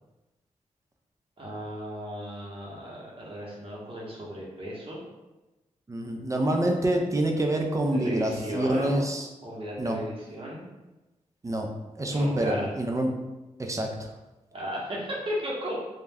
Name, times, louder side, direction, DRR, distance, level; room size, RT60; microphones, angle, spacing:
voice 1, 1.4-5.0 7.9-9.0 9.4-10.6 12.1-12.7 14.5-15.8, equal, 45° right, -4 dB, 0.8 m, -35 dB
voice 2, 5.9-9.3 9.8-10.0 11.4-11.7 12.0-13.1 13.6-14.1, right 1 dB, 25° right, 2 dB, 0.4 m, -26 dB
2.2 x 2.1 x 3.4 m, 1.1 s
cardioid pair, 70°, 13 cm